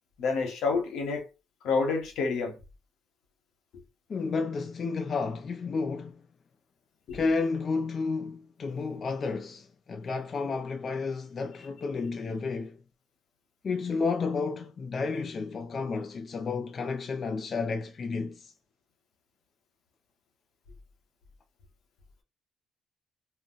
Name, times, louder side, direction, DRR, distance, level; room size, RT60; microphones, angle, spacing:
voice 1, 0.2-1.3 1.6-2.6 7.1-7.2, left 4 dB, 85° left, 0.9 m, -28 dB
voice 2, 4.1-6.2 7.1-12.8 13.6-18.5, left 4 dB, 45° left, 0.4 m, -31 dB
2.3 x 2.1 x 3.7 m
cardioid pair, 90°, 0 cm